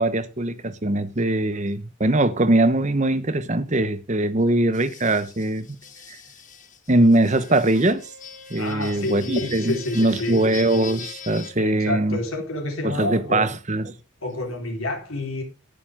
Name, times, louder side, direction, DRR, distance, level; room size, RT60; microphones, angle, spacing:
voice 1, 0.0-5.7 6.9-8.0 8.5-12.2 12.8-13.9, right 1 dB, 35° right, 1.0 m, -21 dB
sound 1, 4.7-11.5, left 7 dB, 35° left, 1.5 m, -42 dB
Wind instrument woodwind instrument, 7.1-11.6, left 3 dB, 55° left, 5.8 m, -48 dB
voice 2, 8.6-10.4 11.6-13.4 14.2-15.4, left 2 dB, 75° left, 3.9 m, -29 dB
18.0 x 6.9 x 3.6 m
head